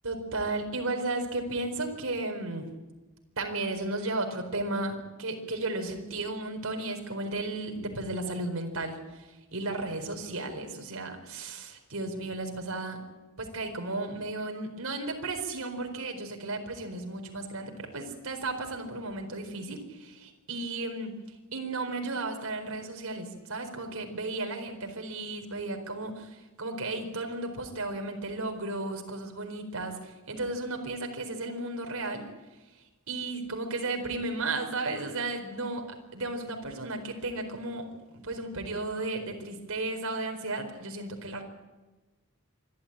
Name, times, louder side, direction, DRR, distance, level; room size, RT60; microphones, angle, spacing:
voice 1, 0.0-2.7 3.4-13.0 13.4-32.3 33.1-35.8 36.1-37.9 38.1-41.4, right 2 dB, 80° right, 4 dB, 4.4 m, -34 dB
26.5 x 13.0 x 9.0 m, 1.2 s
head